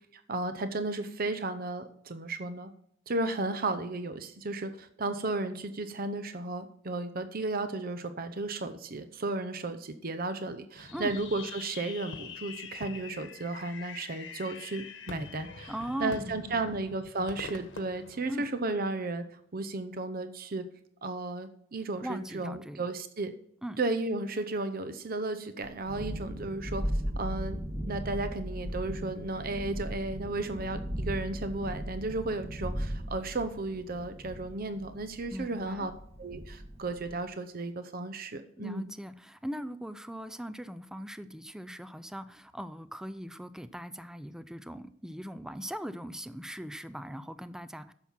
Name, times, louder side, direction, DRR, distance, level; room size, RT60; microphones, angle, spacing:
voice 1, 0.1-2.7 3.1-15.7 16.0-19.2 19.5-20.6 21.0-23.3 23.8-35.9 36.2-38.8, right 2 dB, 50° right, 10 dB, 0.8 m, -34 dB
Fireworks, 10.8-18.9, left 5 dB, 75° left, 1.3 m, -45 dB
voice 2, 15.7-16.8 18.3-18.5 22.0-22.9 23.6-23.8 35.3-35.9 38.6-47.9, equal, 5° right, 13 dB, 0.4 m, -40 dB
Thunderstorm, 25.6-37.2, equal, 35° right, 1.9 m, -37 dB
10.5 x 7.2 x 5.7 m, 0.71 s
head